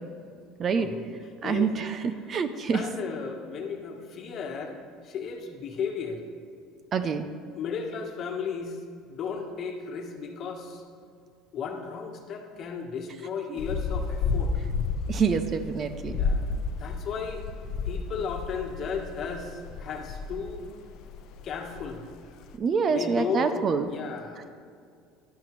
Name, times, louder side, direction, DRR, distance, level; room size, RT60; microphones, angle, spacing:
voice 1, 1.4-2.8 6.9-7.3 15.1-16.2 22.6-23.9, right 5 dB, 35° right, 10 dB, 0.5 m, -26 dB
voice 2, 2.7-4.8 5.0-6.2 7.5-8.8 9.1-10.8 11.5-14.5 16.1-16.4 16.8-17.4 17.8-20.6 21.4-22.0 22.9-24.4, left 6 dB, 45° left, 3 dB, 1.3 m, -34 dB
sound 1, 13.6-20.6 20.9-22.1 22.4-22.5, left 4 dB, 60° left, 0.6 m, -31 dB
11.5 x 11.0 x 3.2 m, 2.3 s
cardioid pair, 130°, 0 cm